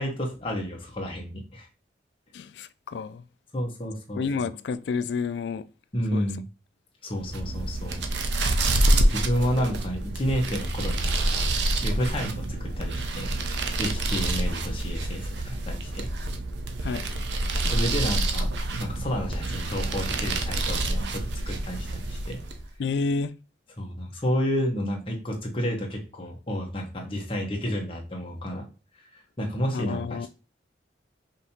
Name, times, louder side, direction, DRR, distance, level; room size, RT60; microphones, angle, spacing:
voice 1, 0.0-1.7 3.5-4.5 5.9-6.4 7.0-8.0 9.1-11.5 11.8-13.3 13.8-16.1 17.7-18.5 18.8-22.4 23.8-28.6 28.9-30.3, equal, 30° left, 1.1 m, -30 dB
voice 2, 2.3-3.2 4.2-5.6 6.1-6.3 16.8-17.2 17.5-17.7 22.8-23.3 29.7-30.3, left 4 dB, 70° left, 0.3 m, -30 dB
sound 1, 7.2-22.7, right 2 dB, 70° right, 0.6 m, -27 dB
5.2 x 2.8 x 2.8 m
head